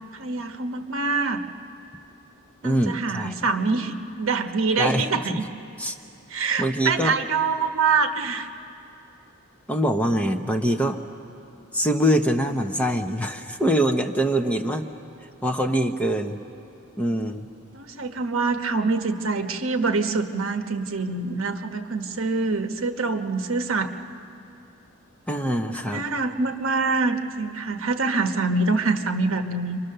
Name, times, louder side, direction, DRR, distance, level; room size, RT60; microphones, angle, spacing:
voice 1, 0.1-1.4 2.6-5.5 6.3-8.5 17.7-23.9 25.8-29.8, right 4 dB, 70° right, 6 dB, 1.2 m, -25 dB
voice 2, 2.6-3.3 4.8-5.4 5.8-5.9 6.6-7.1 9.7-11.0 11.7-14.9 15.4-16.4 17.0-17.5 25.3-26.0, equal, 5° left, 4 dB, 0.8 m, -24 dB
28.5 x 24.0 x 6.7 m, 2.7 s
head